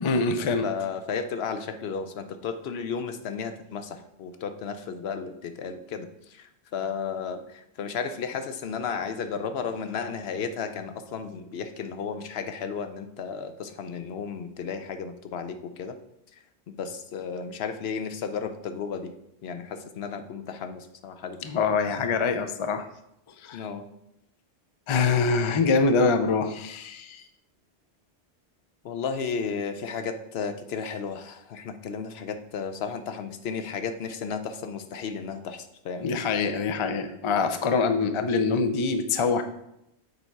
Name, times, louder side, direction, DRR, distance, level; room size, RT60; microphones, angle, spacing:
voice 1, 0.0-0.7 21.4-22.9 23.4-23.6 24.9-27.2 36.0-39.4, left 4 dB, 40° left, 7 dB, 0.5 m, -24 dB
voice 2, 0.6-16.0 16.7-19.1 19.4-21.4 23.5-23.9 28.8-36.2, left 6 dB, 75° left, 9 dB, 0.9 m, -33 dB
6.7 x 4.2 x 4.6 m, 0.80 s
omnidirectional pair, 1.1 m